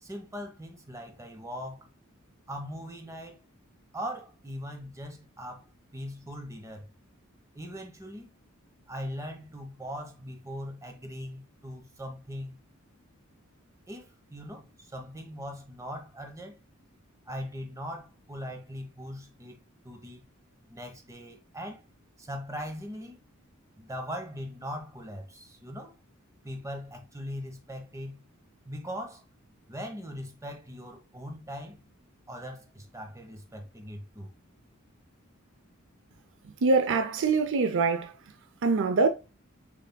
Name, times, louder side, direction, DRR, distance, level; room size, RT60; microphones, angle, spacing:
voice 1, 0.0-1.9 2.5-3.4 3.9-5.6 5.9-6.9 7.5-8.3 8.9-12.6 13.9-16.6 17.3-19.6 19.8-20.2 20.7-21.8 22.2-23.2 23.8-25.9 26.4-28.2 28.6-29.2 29.7-31.8 32.3-34.3, equal, 15° right, 0.9 m, -40 dB
voice 2, 36.6-38.1 38.6-39.1, right 4 dB, 60° right, 0.5 m, -24 dB
6.8 x 3.4 x 2.2 m
head